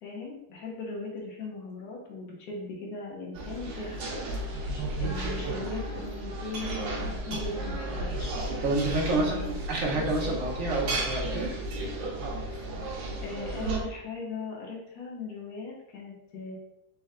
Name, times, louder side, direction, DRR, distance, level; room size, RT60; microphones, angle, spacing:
voice 1, 0.0-4.2 5.0-8.3 9.0-9.6 12.5-12.6 12.9-16.6, left 4 dB, 55° left, -2 dB, 1.5 m, -39 dB
sound 1, 3.3-13.8, right 1 dB, 75° right, 1.6 m, -33 dB
voice 2, 8.6-11.5, right 2 dB, 55° right, -2 dB, 1.0 m, -28 dB
4.3 x 3.1 x 3.6 m, 0.86 s
omnidirectional pair, 2.1 m